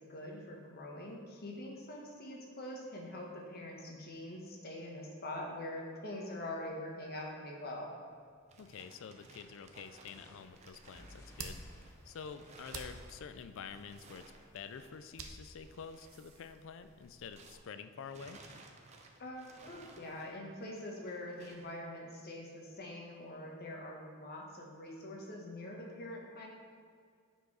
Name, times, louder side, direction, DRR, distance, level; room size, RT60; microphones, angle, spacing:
voice 1, 0.0-7.9 19.2-26.5, left 1 dB, 45° left, -1 dB, 1.2 m, -44 dB
sound 1, 8.2-17.7 18.0-21.8, right 3 dB, 30° right, 0.7 m, -59 dB
voice 2, 8.6-11.6 12.0-14.2 14.5-18.4, left 6 dB, 60° left, 10 dB, 0.4 m, -48 dB
sound 2, 10.1-13.8, left 1 dB, 15° left, 1.0 m, -60 dB
sound 3, 10.4-17.6, right 4 dB, 70° right, 0.7 m, -52 dB
9.2 x 4.5 x 4.8 m, 2.1 s
head